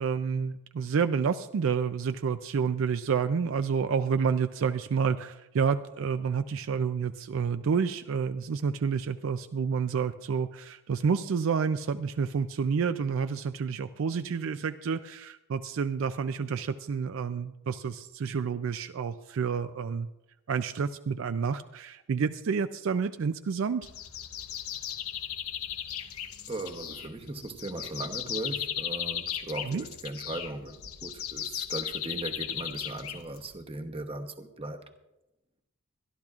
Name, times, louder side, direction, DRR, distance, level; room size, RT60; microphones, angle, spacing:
voice 1, 0.0-20.1 20.5-23.9 29.6-29.8, right 6 dB, 65° right, 0.4 m, -29 dB
sound 1, 23.8-33.6, left 10 dB, 85° left, 0.8 m, -36 dB
voice 2, 26.5-34.8, right 2 dB, 25° right, 0.9 m, -38 dB
23.5 x 12.0 x 2.4 m
head